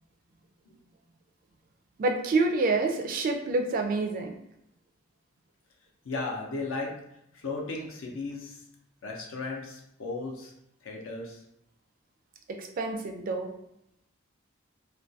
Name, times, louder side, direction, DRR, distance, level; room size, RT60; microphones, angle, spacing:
voice 1, 2.0-4.3 12.5-13.5, right 3 dB, 45° right, 3 dB, 0.3 m, -27 dB
voice 2, 6.0-6.9 7.3-8.6 9.0-10.5 10.8-11.4, left 3 dB, 70° left, 0 dB, 0.5 m, -35 dB
2.2 x 2.2 x 2.6 m, 0.79 s
head